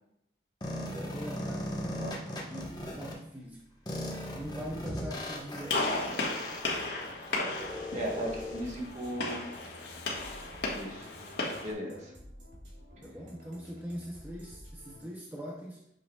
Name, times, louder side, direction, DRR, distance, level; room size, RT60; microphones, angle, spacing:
sound 1, 0.6-3.1 3.9-8.6, left 1 dB, 25° left, 0.9 m, -38 dB
voice 1, 0.9-1.8 2.5-3.7 4.3-6.7 13.0-15.8, equal, 10° right, -2 dB, 0.5 m, -42 dB
voice 2, 1.9-2.4 7.9-9.5 10.7-11.1 11.6-12.1, right 1 dB, 40° right, -1 dB, 1.6 m, -37 dB
Gunshot gunfire, 5.7-11.7, left 2 dB, 75° left, 1.4 m, -35 dB
sound 2, 8.2-15.0, equal, 85° right, 2.7 m, -51 dB
8.5 x 6.2 x 2.3 m, 0.79 s
head